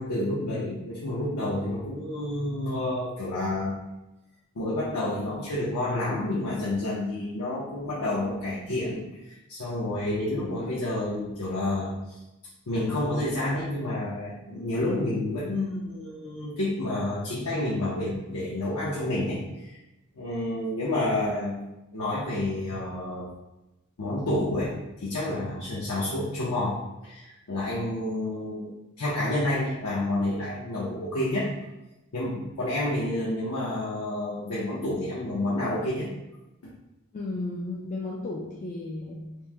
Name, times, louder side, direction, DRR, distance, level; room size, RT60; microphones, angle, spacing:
voice 1, 0.0-3.7 4.6-12.2 12.7-19.8 20.1-21.6 21.9-23.3 24.0-28.7 29.0-31.5 32.1-36.1 36.6-36.7, left 1 dB, 75° left, -7 dB, 0.7 m, -29 dB
voice 2, 37.1-39.4, left 2 dB, 35° left, -4 dB, 0.3 m, -34 dB
3.0 x 2.0 x 3.3 m, 0.97 s
head